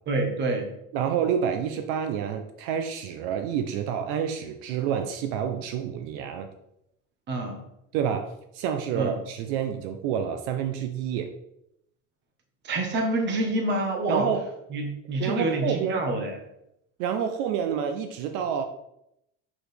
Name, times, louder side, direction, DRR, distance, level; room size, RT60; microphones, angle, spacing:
voice 1, 0.1-0.6 7.3-7.6 8.9-9.2 12.6-14.3 14.7-16.4, right 2 dB, 30° right, 3 dB, 1.2 m, -27 dB
voice 2, 0.9-6.5 7.9-11.3 14.1-14.5 15.2-16.1 17.0-18.6, right 8 dB, 75° right, 7 dB, 0.6 m, -28 dB
6.1 x 5.0 x 3.4 m, 0.80 s
cardioid pair, 170°, 35 cm